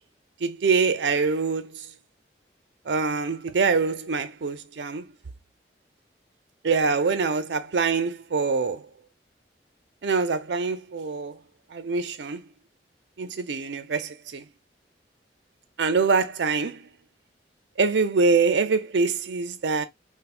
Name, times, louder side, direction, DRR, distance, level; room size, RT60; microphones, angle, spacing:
voice 1, 0.4-1.9 2.9-5.0 6.6-8.8 10.0-11.4 11.7-12.4 13.2-14.4 15.8-16.9 17.8-19.8, right 4 dB, 80° right, 0.5 m, -24 dB
4.5 x 2.1 x 2.5 m
head